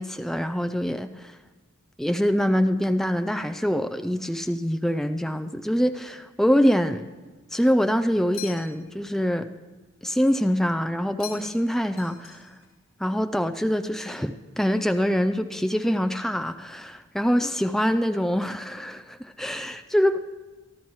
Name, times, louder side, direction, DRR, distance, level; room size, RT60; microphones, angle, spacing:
voice 1, 0.0-1.4 2.0-7.1 7.5-9.5 10.0-12.4 13.0-20.2, equal, ahead, 8 dB, 0.3 m, -24 dB
sound 1, 8.3-9.0 11.2-11.7 12.0-12.7, left 9 dB, 75° left, 3.1 m, -41 dB
23.0 x 13.5 x 3.1 m, 1.2 s
head